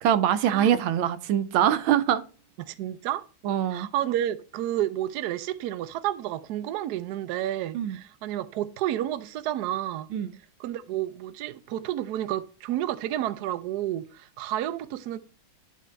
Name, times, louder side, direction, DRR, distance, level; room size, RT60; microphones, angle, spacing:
voice 1, 0.0-2.2 3.4-3.9 7.7-8.0 10.1-10.3, right 10 dB, 90° right, 1.5 m, -23 dB
voice 2, 2.6-3.2 3.7-10.1 10.6-15.2, right 12 dB, 70° right, 1.0 m, -30 dB
11.0 x 3.8 x 4.3 m
omnidirectional pair, 2.2 m